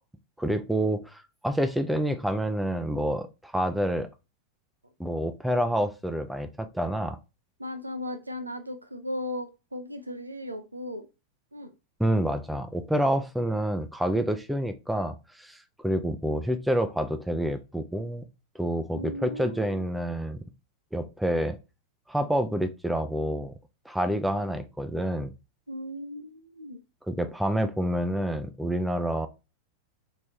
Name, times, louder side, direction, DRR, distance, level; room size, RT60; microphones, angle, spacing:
voice 1, 0.4-4.1 5.0-7.2 12.0-18.2 18.6-20.4 20.9-21.6 22.1-23.5 23.9-25.3 27.1-29.3, right 1 dB, 5° right, 0.4 m, -28 dB
voice 2, 7.6-11.1 11.5-11.7 19.0-19.8 25.7-26.8, left 1 dB, 85° right, 0.5 m, -36 dB
3.3 x 3.1 x 2.5 m
figure-of-eight pair, 90°, 0 cm